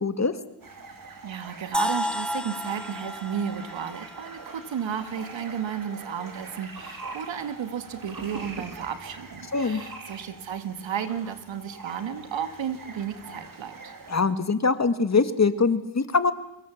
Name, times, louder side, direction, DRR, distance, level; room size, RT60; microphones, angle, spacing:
voice 1, 0.0-0.3 9.5-9.8 14.1-16.3, left 4 dB, 35° left, 11 dB, 2.0 m, -23 dB
sound 1, 0.6-14.2, right 3 dB, 45° right, 4.4 m, -43 dB
voice 2, 1.2-13.9, right 8 dB, 90° right, 10 dB, 2.3 m, -33 dB
sound 2, 1.7-5.7, left 1 dB, ahead, 1.6 m, -33 dB
25.0 x 22.0 x 7.4 m, 0.89 s
cardioid pair, 90°, 45 cm